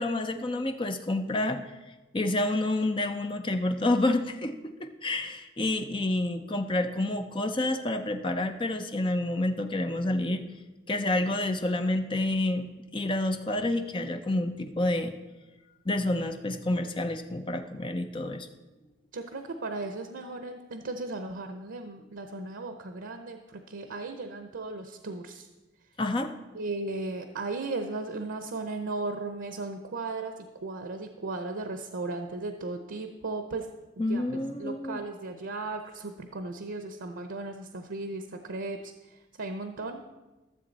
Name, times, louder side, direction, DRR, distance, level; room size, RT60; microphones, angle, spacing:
voice 1, 0.0-1.6 2.1-10.4 10.9-12.7 12.9-15.1 15.9-18.5 26.0-26.3 34.0-35.0, left 2 dB, 25° left, 6 dB, 0.6 m, -28 dB
voice 2, 19.1-25.5 26.5-33.7 34.1-40.0, right 3 dB, 90° right, 7 dB, 0.7 m, -36 dB
13.5 x 7.1 x 4.0 m, 1.1 s
head